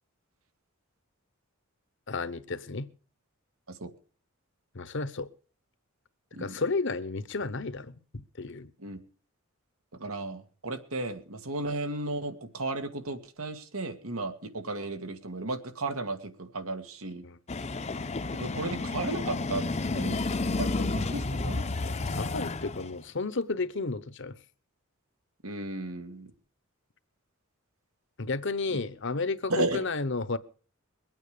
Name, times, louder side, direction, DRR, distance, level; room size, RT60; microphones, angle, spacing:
voice 1, 2.1-2.9 4.7-5.3 6.4-8.7 17.2-17.4 22.2-24.4 28.2-30.4, left 3 dB, 60° left, 1.0 m, -32 dB
voice 2, 9.9-17.2 18.3-19.6 19.9-20.2 20.6-21.9 25.4-26.3 28.7-28.8 29.5-29.8, right 2 dB, 90° right, 2.0 m, -34 dB
sound 1, 17.5-22.9, left 3 dB, 30° left, 0.7 m, -31 dB
22.0 x 9.1 x 5.1 m
head